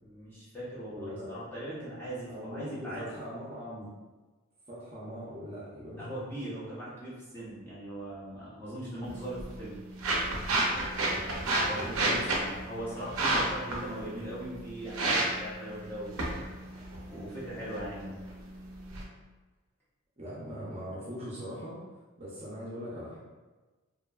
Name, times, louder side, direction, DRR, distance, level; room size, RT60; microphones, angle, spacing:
voice 1, 0.0-3.2 5.9-9.7 11.6-16.4 17.1-18.2, right 1 dB, 10° left, -10 dB, 0.7 m, -40 dB
voice 2, 0.9-1.3 2.3-3.9 4.7-6.2 11.7-12.2 20.2-23.2, equal, 30° right, -8 dB, 0.5 m, -41 dB
sound 1, 9.0-19.0, right 2 dB, 85° right, 0.5 m, -32 dB
2.6 x 2.2 x 2.2 m, 1.2 s
head